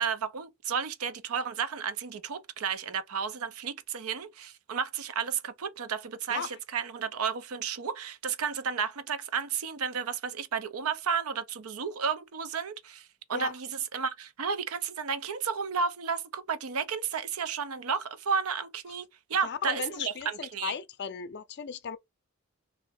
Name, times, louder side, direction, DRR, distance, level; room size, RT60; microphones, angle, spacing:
voice 1, 0.0-19.0 19.3-20.7, right 6 dB, 80° right, 0.6 m, -32 dB
voice 2, 19.4-22.0, left 7 dB, 50° left, 0.5 m, -36 dB
3.1 x 2.7 x 4.2 m
head